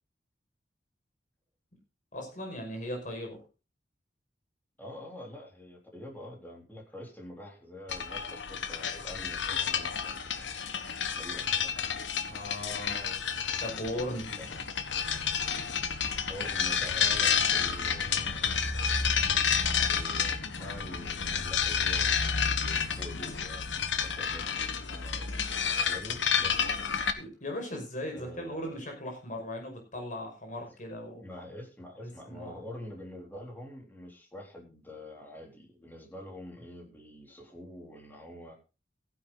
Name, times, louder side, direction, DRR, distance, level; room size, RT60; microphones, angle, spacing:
voice 1, 2.1-3.4 12.3-13.1 13.6-14.3 27.2-31.2 32.3-32.6, left 1 dB, 45° left, 3 dB, 5.5 m, -38 dB
voice 2, 4.8-10.5 11.1-11.7 14.4-14.6 16.3-18.8 19.8-24.5 24.9-25.4 25.9-27.0 28.1-28.8 31.2-38.6, left 1 dB, 10° left, 0 dB, 3.7 m, -46 dB
sound 1, 7.9-27.1, left 7 dB, 75° left, 1.4 m, -30 dB
15.5 x 10.0 x 3.9 m, 0.31 s
head